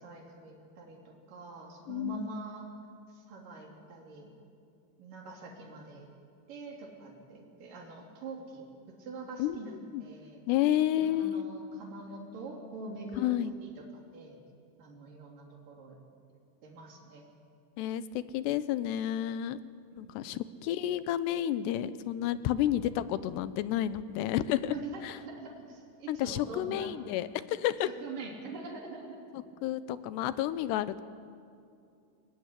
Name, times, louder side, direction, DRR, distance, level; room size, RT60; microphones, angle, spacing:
voice 1, 0.0-2.8 3.1-4.3 5.0-6.1 6.5-8.6 9.0-10.4 11.0-13.4 13.6-13.8 14.1-14.4 14.8-16.0 16.6-17.3 19.9-20.4 24.7-26.9 28.0-29.2, right 3 dB, 55° right, 0 dB, 4.8 m, -44 dB
voice 2, 1.9-2.4 9.4-9.6 9.9-10.1 10.5-11.5 13.2-13.5 17.8-19.6 20.0-24.8 25.0-25.1 26.1-27.9 29.6-31.0, left 12 dB, 85° left, 15 dB, 2.9 m, -30 dB
23.0 x 20.0 x 9.9 m, 2.5 s
omnidirectional pair, 4.8 m